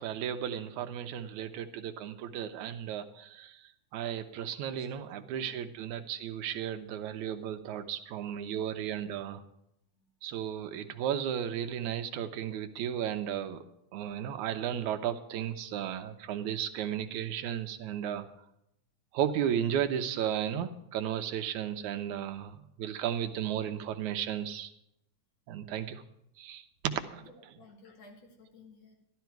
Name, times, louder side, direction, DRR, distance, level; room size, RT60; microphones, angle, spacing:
voice 1, 0.0-3.5 3.9-9.4 10.2-13.6 13.9-18.3 19.1-24.7 25.5-26.0 26.4-27.2, right 10 dB, 80° right, 7 dB, 2.2 m, -34 dB
voice 2, 4.6-5.1 5.4-5.7 6.5-6.6 10.0-10.1 27.2-29.0, left 3 dB, 60° left, 0 dB, 3.4 m, -55 dB
12.5 x 12.0 x 4.6 m, 0.79 s
omnidirectional pair, 3.4 m